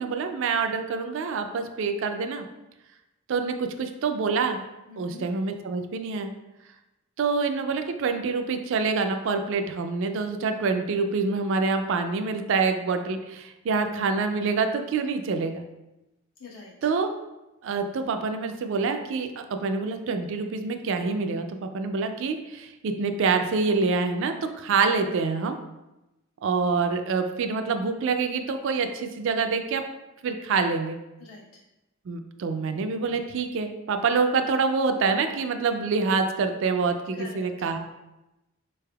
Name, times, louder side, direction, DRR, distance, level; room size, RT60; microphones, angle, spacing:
voice 1, 0.0-2.5 3.3-4.6 5.0-6.3 7.2-15.6 16.8-17.1 17.6-25.6 26.4-29.8 30.2-31.0 32.1-37.8, right 4 dB, 60° right, 6 dB, 0.3 m, -26 dB
voice 2, 4.9-5.3 16.4-16.7 31.2-31.6 37.1-37.8, left 3 dB, 75° left, -4 dB, 1.0 m, -44 dB
4.0 x 3.3 x 2.2 m, 0.98 s
head